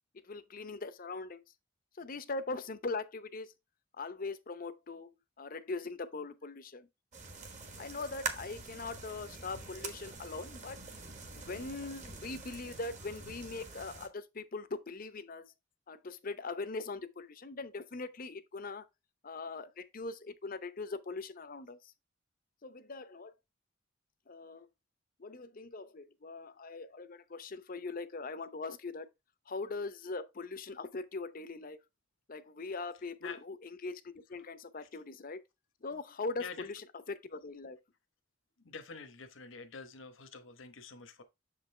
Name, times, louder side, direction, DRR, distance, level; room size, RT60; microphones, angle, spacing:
voice 1, 0.2-1.4 2.0-3.5 4.0-6.9 7.8-10.8 11.4-15.5 15.9-18.9 19.2-21.9 22.6-23.3 24.3-24.7 25.2-29.1 29.5-31.8 32.3-35.4 35.8-37.8, left 3 dB, 45° left, 0.7 m, -41 dB
sound 1, 7.1-14.1, right 4 dB, 35° right, 1.4 m, -45 dB
voice 2, 38.6-41.2, left 5 dB, 75° left, 1.1 m, -47 dB
7.1 x 5.2 x 3.3 m
head